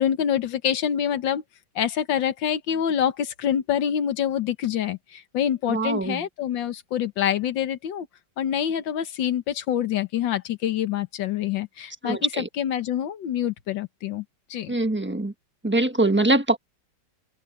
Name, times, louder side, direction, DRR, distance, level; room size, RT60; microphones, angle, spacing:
voice 1, 0.0-1.4 1.7-8.1 8.4-14.2 14.5-14.7, left 9 dB, 65° left, 1.7 m, -26 dB
voice 2, 5.7-6.2 12.0-12.5 14.7-15.3 15.6-16.6, right 2 dB, 10° right, 0.8 m, -23 dB
omnidirectional pair, 2.2 m